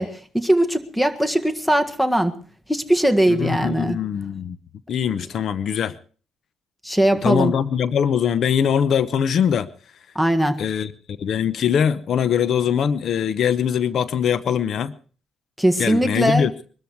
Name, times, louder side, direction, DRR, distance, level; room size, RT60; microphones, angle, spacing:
voice 1, 0.0-2.4 2.7-4.0 6.8-7.5 10.1-10.6 15.6-16.5, right 1 dB, 5° left, 1.7 m, -20 dB
voice 2, 3.3-4.6 4.9-6.0 7.2-9.7 10.6-14.9 15.8-16.5, left 8 dB, 65° left, 0.8 m, -22 dB
22.5 x 13.0 x 4.6 m
cardioid pair, 90°, 0 cm